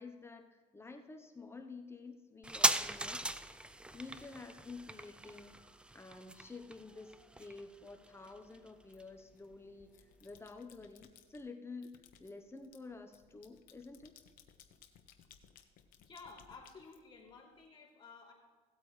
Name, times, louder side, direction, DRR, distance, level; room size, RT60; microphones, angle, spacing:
voice 1, 0.0-3.3 3.9-5.6 5.9-14.2, left 3 dB, 15° left, 5 dB, 1.0 m, -50 dB
sound 1, 2.4-9.5 9.8-9.9, right 1 dB, 5° right, 0.4 m, -38 dB
sound 2, 8.9-9.5 9.9-11.4 11.8-17.6, left 8 dB, 70° left, 1.1 m, -62 dB
voice 2, 16.0-18.3, left 4 dB, 35° left, -4 dB, 3.4 m, -54 dB
17.0 x 8.4 x 3.3 m, 1.4 s
cardioid pair, 110°, 15 cm